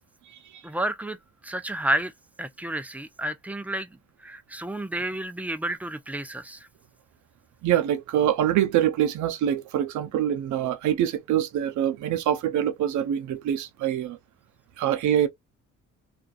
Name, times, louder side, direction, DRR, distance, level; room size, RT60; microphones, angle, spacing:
voice 1, 0.6-1.2 1.4-2.1 2.4-3.9 4.2-6.7, right 1 dB, 5° right, 0.5 m, -30 dB
voice 2, 7.6-14.2 14.8-15.3, right 10 dB, 75° right, 0.6 m, -25 dB
2.5 x 2.4 x 2.3 m
cardioid pair, 90°, 30 cm